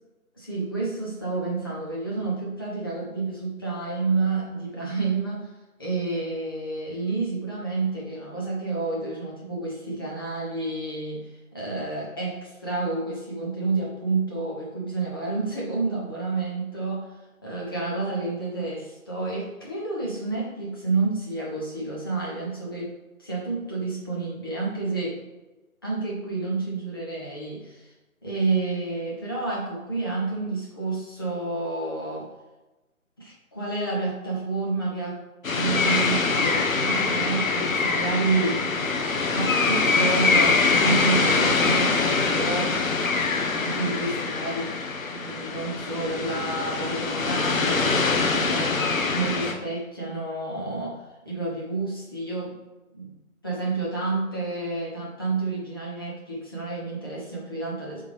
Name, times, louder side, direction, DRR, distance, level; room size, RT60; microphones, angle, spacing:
voice 1, 0.4-5.5 5.8-12.4 12.6-17.2 17.4-22.9 23.2-25.2 25.8-27.9 28.2-32.3 33.2-35.2 35.5-38.9 39.3-42.8 43.6-44.7 45.1-52.6 52.9-53.1 53.4-58.0, right 3 dB, 15° left, -5 dB, 0.8 m, -29 dB
sound 1, 35.4-49.5, left 4 dB, 65° left, 1.0 m, -24 dB
7.9 x 3.7 x 3.4 m, 1.1 s
figure-of-eight pair, 150°, 43 cm